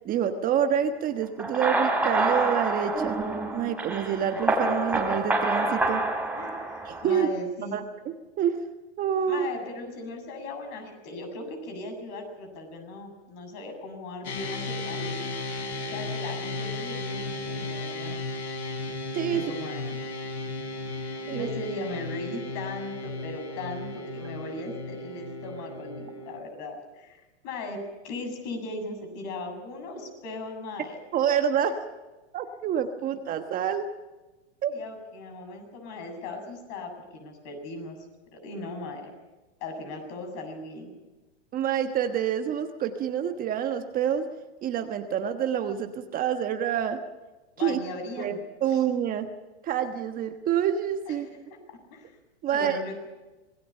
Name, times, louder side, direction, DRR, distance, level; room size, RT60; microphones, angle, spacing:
voice 1, 0.0-3.2 3.5-6.0 6.8-7.3 7.7-8.6 9.0-9.5 19.1-19.4 21.3-21.5 31.1-31.8 32.3-33.9 34.6-34.7 41.5-44.3 44.6-47.0 47.6-47.8 48.2-49.3 49.6-51.3 52.4-52.8, right 9 dB, 25° right, 6 dB, 1.3 m, -27 dB
sound 1, 1.4-7.2, right 2 dB, 5° right, 3.0 m, -27 dB
voice 2, 6.3-7.8 9.3-15.1 15.9-18.2 19.3-20.1 20.9-27.8 28.0-31.0 34.7-38.0 38.3-39.1 39.6-40.9 47.6-48.4 48.7-48.8 51.1-51.4 51.7-52.1 52.5-53.1, left 2 dB, 45° left, 5 dB, 7.4 m, -38 dB
sound 2, 14.2-26.4, left 2 dB, 75° left, 4.1 m, -35 dB
26.5 x 20.0 x 5.6 m, 1.2 s
hypercardioid pair, 125°, 33 cm